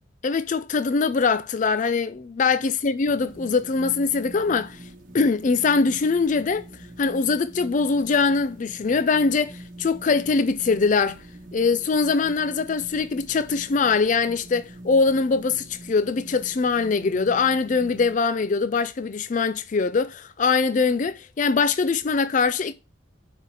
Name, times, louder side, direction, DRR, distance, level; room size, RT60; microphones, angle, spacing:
voice 1, 0.2-4.9 5.1-6.6 7.0-11.2 11.5-22.7, left 4 dB, 40° left, 0.4 m, -22 dB
sound 1, 3.0-18.2, right 1 dB, 40° right, 1.5 m, -44 dB
9.8 x 4.3 x 4.9 m
head